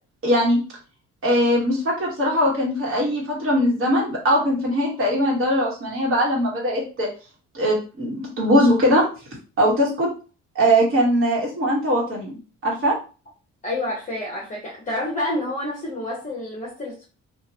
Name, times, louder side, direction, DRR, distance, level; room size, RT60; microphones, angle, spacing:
voice 1, 0.2-0.6 1.2-7.1 7.5-9.1 9.6-10.1 10.5-13.0, equal, 45° right, -4 dB, 1.3 m, -20 dB
voice 2, 13.6-17.0, left 1 dB, 25° left, -3 dB, 1.0 m, -28 dB
2.9 x 2.4 x 2.8 m, 0.34 s
cardioid pair, 90°, 30 cm